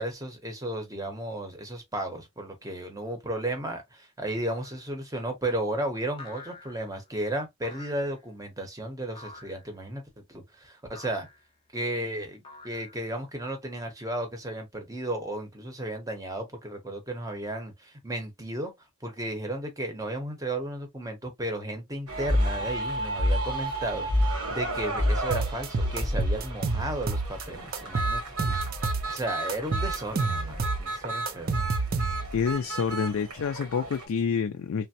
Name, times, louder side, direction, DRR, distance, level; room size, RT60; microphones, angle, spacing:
voice 1, 0.0-11.3 11.7-18.7 19.0-28.6 29.1-31.5, right 1 dB, 15° right, 0.7 m, -34 dB
sound 1, 4.5-4.9 6.2-7.0 7.6-8.2 9.1-9.7 10.9-11.5 12.4-13.2, left 3 dB, 20° left, 0.7 m, -47 dB
sound 2, 22.1-34.1, equal, 85° right, 1.3 m, -31 dB
sound 3, 25.3-27.4 27.7-29.2 29.5-32.4, right 3 dB, 40° right, 0.4 m, -29 dB
voice 2, 32.3-34.9, left 6 dB, 70° left, 0.3 m, -28 dB
3.3 x 2.0 x 2.6 m
head